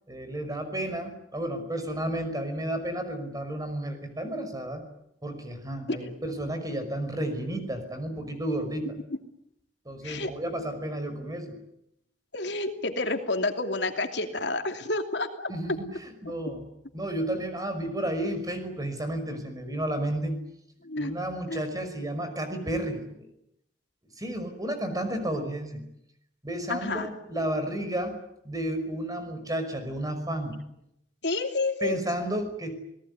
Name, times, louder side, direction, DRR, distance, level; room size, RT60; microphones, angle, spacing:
voice 1, 0.1-4.8 5.2-8.9 9.9-11.6 15.5-16.7 16.9-20.4 21.0-23.3 24.2-25.8 26.4-28.2 28.4-30.6 31.8-32.8, right 1 dB, 20° right, 8 dB, 5.5 m, -32 dB
voice 2, 12.3-15.5 20.8-21.1 21.5-21.6 26.7-27.1 31.2-32.0, left 2 dB, 75° left, 5 dB, 2.8 m, -29 dB
29.0 x 18.5 x 9.7 m, 0.79 s
head